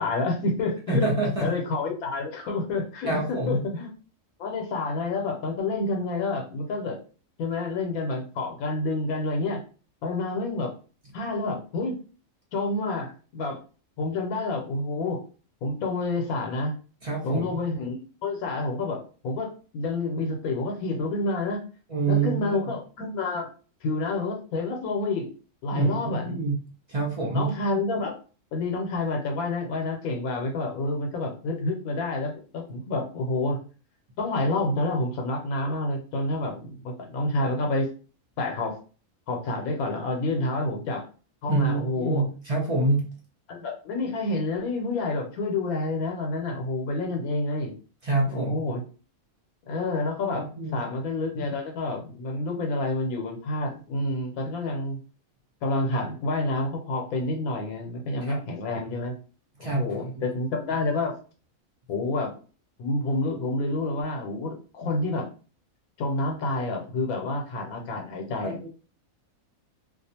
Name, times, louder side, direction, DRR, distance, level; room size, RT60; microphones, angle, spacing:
voice 1, 0.0-1.1 1.4-3.9 4.4-7.0 7.4-9.6 10.0-10.7 11.1-12.0 12.5-13.6 14.0-15.2 15.6-16.8 17.2-21.6 22.1-23.5 23.8-25.3 25.6-26.4 27.3-28.1 28.5-33.6 34.2-37.9 38.4-38.8 39.3-41.0 41.4-42.2 43.5-47.7 48.3-48.8 49.7-50.5 50.7-55.0 55.6-59.1 59.6-61.1 61.9-62.3 62.8-65.3 66.0-68.7, left 2 dB, 80° left, 2 dB, 1.1 m, -28 dB
voice 2, 0.9-1.5 3.1-3.6 17.0-17.6 21.9-22.6 25.7-26.6 26.9-27.5 41.5-43.1 48.0-48.5 50.6-50.8 58.2-58.4 59.6-60.0 68.4-68.7, right 2 dB, 40° right, -3 dB, 0.5 m, -26 dB
2.4 x 2.3 x 2.7 m, 0.38 s
omnidirectional pair, 1.5 m